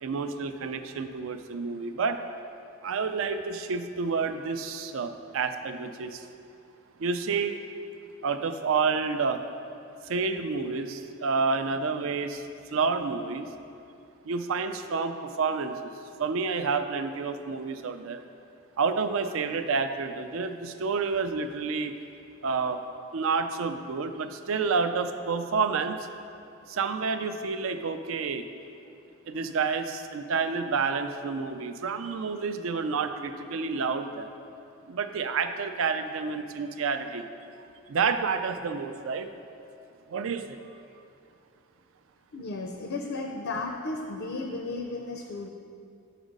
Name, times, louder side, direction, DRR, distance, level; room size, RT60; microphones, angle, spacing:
voice 1, 0.0-2.2 2.8-6.2 7.0-7.6 8.2-9.4 10.1-12.4 12.7-13.5 14.3-15.9 16.2-18.2 18.8-21.9 22.4-22.8 23.1-26.1 26.7-28.5 29.3-34.3 34.9-37.3 37.9-39.3 40.1-40.8, right 5 dB, 65° right, 9 dB, 0.4 m, -29 dB
voice 2, 42.3-45.5, left 3 dB, 70° left, 3 dB, 0.5 m, -34 dB
6.2 x 5.0 x 5.2 m, 2.6 s
head